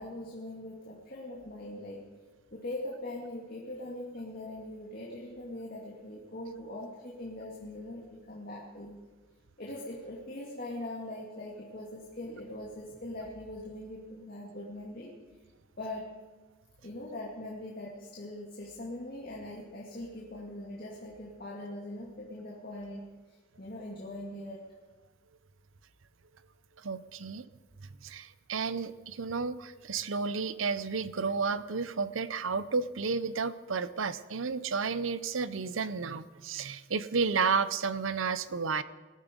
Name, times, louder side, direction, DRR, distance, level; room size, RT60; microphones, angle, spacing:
voice 1, 0.0-2.1 2.5-9.0 9.6-15.1 15.8-16.1 16.8-23.1 23.6-24.6, left 1 dB, 45° left, -3 dB, 2.3 m, -41 dB
voice 2, 26.8-27.4 28.0-38.8, right 5 dB, 70° right, 15 dB, 0.7 m, -32 dB
20.0 x 13.0 x 5.3 m, 1.3 s
head